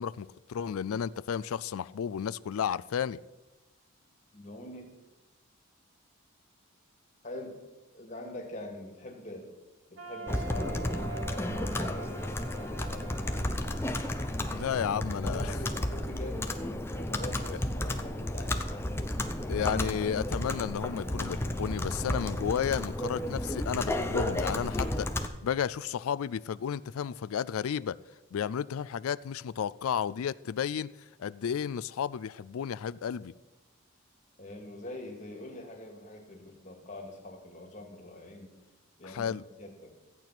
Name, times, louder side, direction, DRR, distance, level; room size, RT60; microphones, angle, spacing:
voice 1, 0.0-3.2 14.5-15.5 19.5-25.1 25.4-28.0 28.3-30.9 31.2-33.3 39.0-39.4, left 8 dB, 70° left, 17 dB, 0.3 m, -32 dB
voice 2, 4.3-4.9 7.2-7.6 7.9-9.5 9.9-13.5 14.9-16.5 17.0-18.9 34.4-38.6 39.0-39.9, left 1 dB, 35° left, 1 dB, 2.4 m, -44 dB
sound 1, 10.0-15.9, right 4 dB, 65° right, 1.7 m, -46 dB
Computer keyboard, 10.3-25.3, left 1 dB, 10° left, 0.7 m, -32 dB
14.5 x 8.9 x 6.0 m, 1.1 s
head